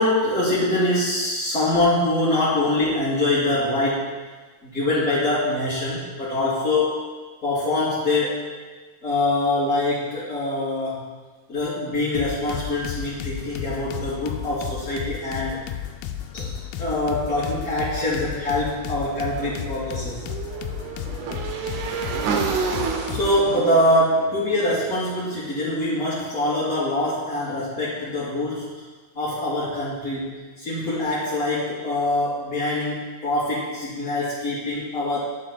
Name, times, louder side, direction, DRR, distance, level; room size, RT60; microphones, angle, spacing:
voice 1, 0.0-4.2 4.7-7.0 7.4-8.4 9.0-11.0 11.5-15.6 16.3-16.5 16.8-20.2 23.1-28.7 29.1-35.2, left 1 dB, 25° left, -15 dB, 2.8 m, -24 dB
sound 1, 12.1-23.4, left 10 dB, 80° left, 2.2 m, -33 dB
Motorcycle / Engine, 19.3-25.5, right 5 dB, 75° right, 2.0 m, -30 dB
11.5 x 9.0 x 2.3 m, 1.4 s
omnidirectional pair, 4.4 m